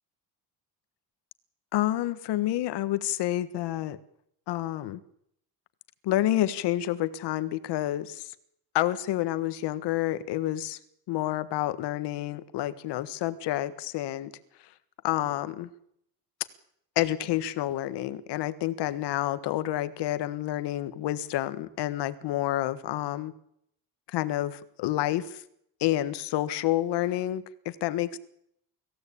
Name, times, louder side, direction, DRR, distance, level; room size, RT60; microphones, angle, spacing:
voice 1, 1.7-4.0 4.5-5.0 6.0-8.3 8.7-10.8 11.1-14.3 15.0-15.7 16.9-23.3 24.1-25.4 25.8-28.2, left 14 dB, 85° left, 13 dB, 1.6 m, -29 dB
25.0 x 16.0 x 8.6 m, 0.73 s
cardioid pair, 165°, 40 cm